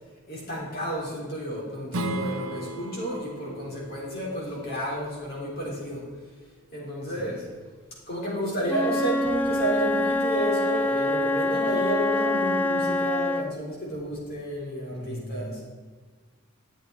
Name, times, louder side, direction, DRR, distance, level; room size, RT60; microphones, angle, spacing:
voice 1, 0.3-6.1 6.7-7.4 8.1-15.6, equal, 45° left, -4 dB, 3.8 m, -31 dB
Strum, 1.9-7.1, right 2 dB, 80° right, 0.9 m, -37 dB
Wind instrument woodwind instrument, 8.7-13.6, left 1 dB, 10° left, 0.4 m, -25 dB
voice 2, 14.9-15.6, equal, 15° right, -4 dB, 2.7 m, -38 dB
12.5 x 8.4 x 4.6 m, 1.4 s
head